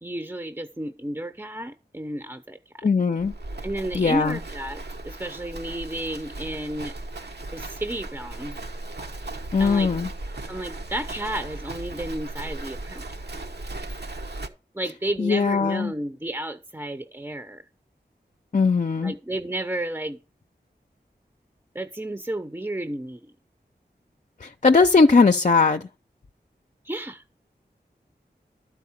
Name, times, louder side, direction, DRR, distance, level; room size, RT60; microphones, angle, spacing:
voice 1, 0.0-2.8 3.6-6.9 7.5-8.6 9.6-9.9 10.5-13.1 14.7-17.6 19.0-20.2 21.7-23.3 26.8-27.2, right 1 dB, 15° right, 0.7 m, -32 dB
voice 2, 2.8-3.3 3.9-4.4 9.5-10.1 15.2-15.9 18.5-19.1 24.4-25.8, left 4 dB, 45° left, 0.6 m, -19 dB
Livestock farm animals working animals, 3.2-14.5, right 2 dB, 70° right, 1.1 m, -37 dB
12.0 x 4.6 x 7.3 m
wide cardioid pair, 55°, 18 cm